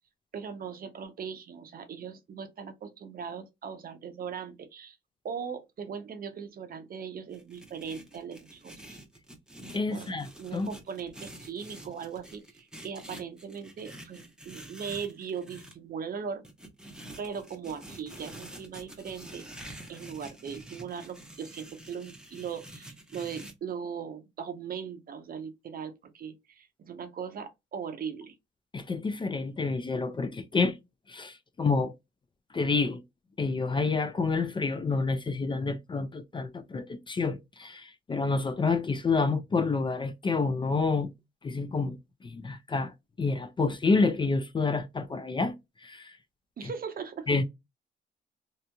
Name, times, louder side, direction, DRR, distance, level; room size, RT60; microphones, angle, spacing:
voice 1, 0.3-5.0 5.2-9.0 9.9-16.5 17.2-19.5 19.9-28.4 46.6-47.4, right 6 dB, 45° right, 0.6 m, -39 dB
sound 1, 7.3-15.7 16.4-23.5, right 1 dB, 5° right, 0.7 m, -47 dB
voice 2, 9.7-10.7 28.7-30.7 31.1-31.9 32.5-33.0 33.4-41.1 41.4-42.0 42.2-42.9 43.2-45.5 45.8-46.1 47.3-47.4, left 4 dB, 25° left, 0.4 m, -28 dB
2.8 x 2.6 x 2.2 m
cardioid pair, 90°, 20 cm